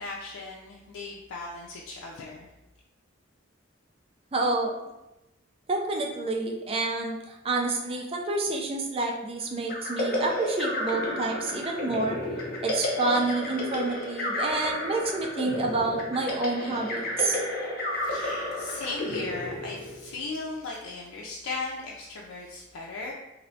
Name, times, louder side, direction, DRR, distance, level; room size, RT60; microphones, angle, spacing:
voice 1, 0.0-2.5 18.0-23.1, left 3 dB, 90° left, -3 dB, 0.4 m, -37 dB
voice 2, 4.3-4.8 5.7-12.2 12.6-17.4, right 2 dB, 30° right, 1 dB, 0.4 m, -28 dB
sound 1, 9.7-20.3, left 1 dB, 50° left, 0.6 m, -32 dB
3.1 x 2.6 x 2.6 m, 0.95 s
head